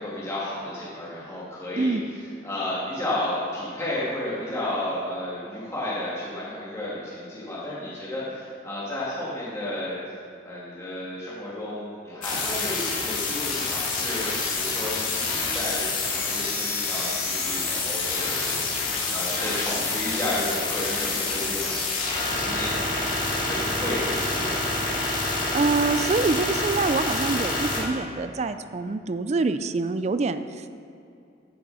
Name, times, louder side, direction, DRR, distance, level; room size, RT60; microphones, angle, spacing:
voice 1, 0.0-2.0 2.4-10.0 10.4-24.7, left 1 dB, 15° left, -8 dB, 2.3 m, -32 dB
voice 2, 1.8-2.1 25.5-30.7, right 3 dB, 35° right, 11 dB, 0.4 m, -25 dB
sound 1, 12.2-27.8, left 3 dB, 45° left, 2.6 m, -27 dB
14.5 x 6.9 x 5.6 m, 2.7 s
head